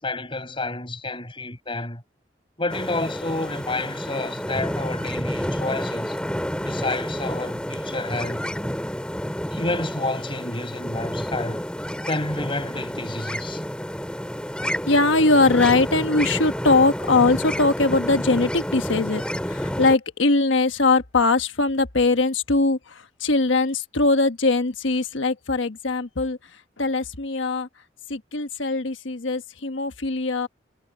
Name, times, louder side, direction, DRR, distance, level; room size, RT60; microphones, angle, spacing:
voice 1, 0.0-2.0 2.6-6.2 6.6-8.4 9.5-11.6 12.0-13.6, left 2 dB, 30° left, 6.2 m, -30 dB
sound 1, 2.7-20.0, equal, 5° left, 2.4 m, -29 dB
voice 2, 14.9-19.2 19.5-26.4 26.8-27.7 28.1-30.5, left 3 dB, 85° left, 1.3 m, -21 dB
head